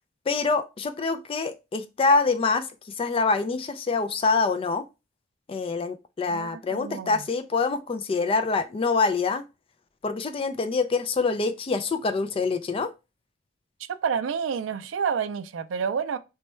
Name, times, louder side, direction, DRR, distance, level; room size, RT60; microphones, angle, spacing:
voice 1, 0.3-2.7 3.0-4.8 5.5-9.5 10.0-12.9, left 4 dB, 30° left, 0.3 m, -25 dB
voice 2, 6.3-7.3 14.0-16.2, right 6 dB, 75° right, 0.4 m, -29 dB
3.1 x 2.2 x 4.3 m
head